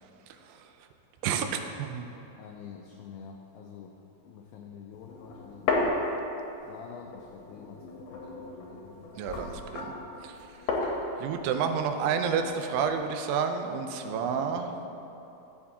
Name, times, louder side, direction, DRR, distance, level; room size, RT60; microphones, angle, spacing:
voice 1, 1.2-2.1 9.2-9.9 10.2-10.5 11.2-14.7, right 6 dB, 85° right, 6 dB, 2.7 m, -30 dB
voice 2, 2.4-4.0 4.2-6.0 6.6-9.2 9.5-9.7 13.9-14.9, left 6 dB, 90° left, 1 dB, 2.0 m, -47 dB
sound 1, 4.9-6.7 7.1-13.0, left 3 dB, 70° left, 2.3 m, -34 dB
14.0 x 6.9 x 2.8 m, 3.0 s
omnidirectional pair, 4.7 m